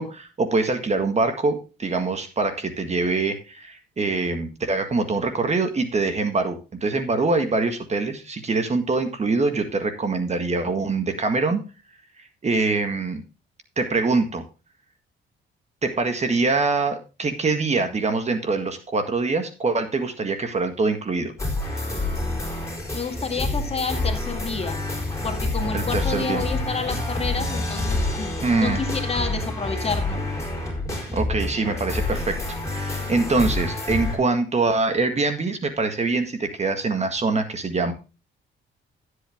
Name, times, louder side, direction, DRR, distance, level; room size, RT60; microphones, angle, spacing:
voice 1, 0.0-11.6 12.4-13.2 13.8-14.4 15.8-21.3 25.7-26.4 28.4-28.8 31.1-32.4 32.7-37.9, right 3 dB, 35° right, 8 dB, 1.8 m, -24 dB
sound 1, 21.4-34.2, left 2 dB, 15° left, 4.3 m, -28 dB
voice 2, 22.9-24.8 25.2-30.2, left 4 dB, 30° left, 3 dB, 2.0 m, -29 dB
12.0 x 8.1 x 3.6 m, 0.32 s
cardioid pair, 90°, 20 cm